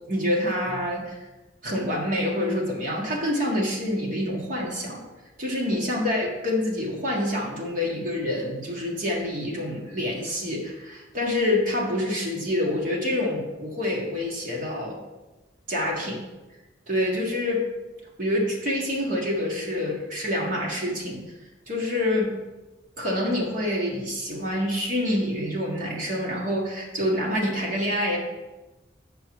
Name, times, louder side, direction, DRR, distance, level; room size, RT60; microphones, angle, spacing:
voice 1, 0.1-1.2 1.6-5.0 5.4-15.0 15.7-16.2 16.9-17.6 18.2-21.2 21.7-22.3 23.0-28.2, left 1 dB, 45° right, -3 dB, 1.6 m, -27 dB
8.7 x 5.6 x 4.7 m, 1.1 s
head